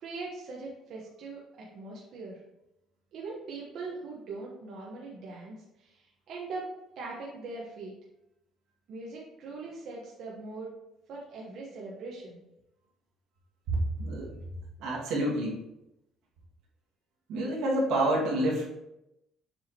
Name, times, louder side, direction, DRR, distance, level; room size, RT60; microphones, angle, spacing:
voice 1, 0.0-2.4 3.1-6.7 7.0-7.9 8.9-10.7 11.1-12.4, right 3 dB, 55° right, -4 dB, 1.1 m, -41 dB
voice 2, 13.7-14.3 14.8-15.6 17.3-18.7, right 1 dB, 80° right, -3 dB, 1.9 m, -28 dB
7.1 x 4.8 x 2.9 m, 0.88 s
cardioid pair, 165°, 0 cm